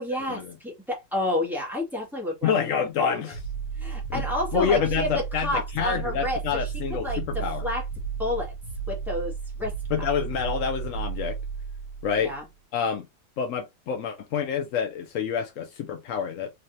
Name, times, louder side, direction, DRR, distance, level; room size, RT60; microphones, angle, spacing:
voice 1, 0.0-2.5 3.0-3.2 3.8-6.7 7.0-7.8 8.2-8.5 8.9-9.3 9.6-10.1 12.2-12.4, left 1 dB, ahead, 1.6 m, -30 dB
voice 2, 2.4-3.4 4.1-4.2 4.5-7.7 9.9-11.4 12.0-12.3 12.7-13.1 13.4-16.5, left 7 dB, 65° left, 0.8 m, -27 dB
sound 1, 3.3-12.4, right 6 dB, 85° left, 1.8 m, -33 dB
4.0 x 3.2 x 2.7 m
omnidirectional pair, 2.0 m